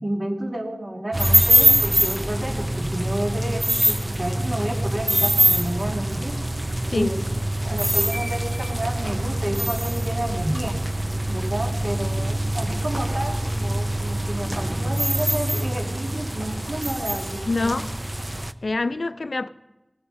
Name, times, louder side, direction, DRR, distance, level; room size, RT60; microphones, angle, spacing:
voice 1, 0.0-6.3 6.9-7.3 7.6-10.8 11.3-17.8, right 1 dB, 55° right, 2.0 m, -30 dB
sound 1, 1.1-18.5, right 1 dB, 20° right, 0.5 m, -24 dB
voice 2, 17.5-17.9 18.6-19.5, left 3 dB, 80° left, 0.4 m, -25 dB
18.5 x 7.9 x 5.4 m
wide cardioid pair, 60°, 0 cm